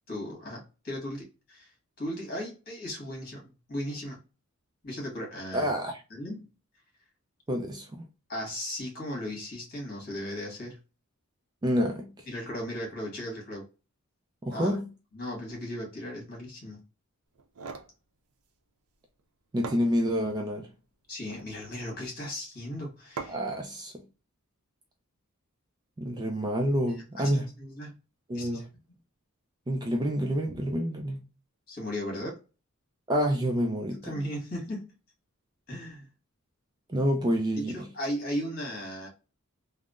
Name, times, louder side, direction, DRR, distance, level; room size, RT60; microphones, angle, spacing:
voice 1, 0.1-1.7 2.0-4.2 4.8-5.7 6.1-6.5 8.3-10.8 12.3-13.6 14.5-14.7 15.1-16.8 21.1-23.4 26.9-27.3 27.6-28.0 28.3-28.6 31.7-32.4 34.0-34.8 35.7-36.1 37.6-39.1, equal, 40° left, 1.5 m, -36 dB
voice 2, 5.5-6.0 7.5-8.1 11.6-12.1 14.4-14.9 19.5-20.7 23.3-24.0 26.0-27.5 28.3-28.7 29.7-31.2 33.1-34.1 36.9-37.9, equal, 20° right, 0.3 m, -28 dB
sound 1, 17.4-17.9 19.2-19.3 19.6-20.4 21.1-21.6 23.2-23.6, right 5 dB, 75° right, 0.5 m, -41 dB
3.5 x 2.0 x 2.4 m
head